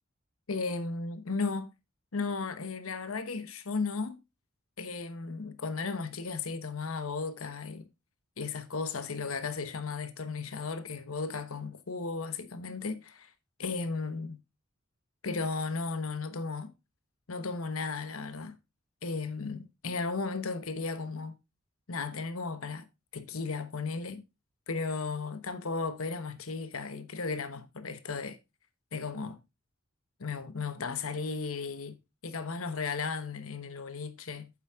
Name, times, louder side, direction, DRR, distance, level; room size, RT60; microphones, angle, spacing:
voice 1, 0.5-1.7 2.1-4.2 4.8-7.8 8.4-13.3 13.6-14.4 15.2-16.7 17.3-18.5 19.0-21.4 21.9-22.9 23.1-24.2 24.7-28.4 28.9-29.4 30.2-32.0 32.2-34.5, left 4 dB, 80° left, 1.1 m, -35 dB
9.2 x 7.3 x 3.6 m
head